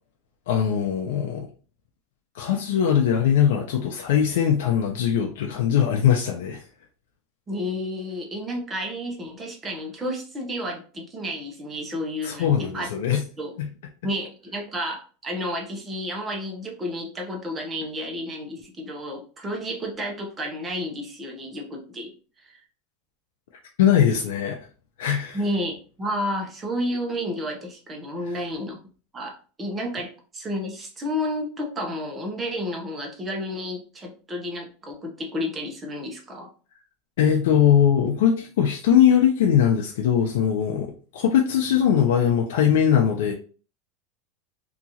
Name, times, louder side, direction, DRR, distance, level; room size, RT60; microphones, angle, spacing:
voice 1, 0.5-1.5 2.3-6.6 12.2-13.2 13.6-13.7 23.8-24.6 25.0-25.4 37.2-43.3, left 9 dB, 80° left, 0.5 m, -21 dB
voice 2, 7.5-12.9 13.4-13.5 14.0-22.1 22.4-22.6 25.3-28.8 29.1-36.5, equal, 15° right, 0.7 m, -31 dB
2.9 x 2.4 x 2.7 m
supercardioid pair, 155°, 0 cm